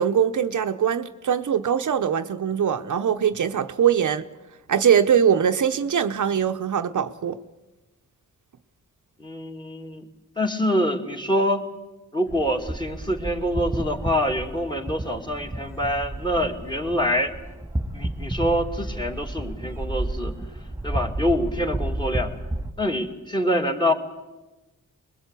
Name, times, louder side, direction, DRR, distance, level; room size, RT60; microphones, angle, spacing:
voice 1, 0.0-4.3 4.7-7.4, right 8 dB, 60° right, 0.9 m, -22 dB
voice 2, 9.2-10.0 10.4-11.6 12.1-17.3 17.9-20.3 20.8-22.3 22.8-23.9, equal, 15° left, 2.5 m, -25 dB
sound 1, 12.3-22.7, right 1 dB, 5° right, 2.0 m, -32 dB
24.0 x 21.0 x 8.3 m
cardioid pair, 90°, 33 cm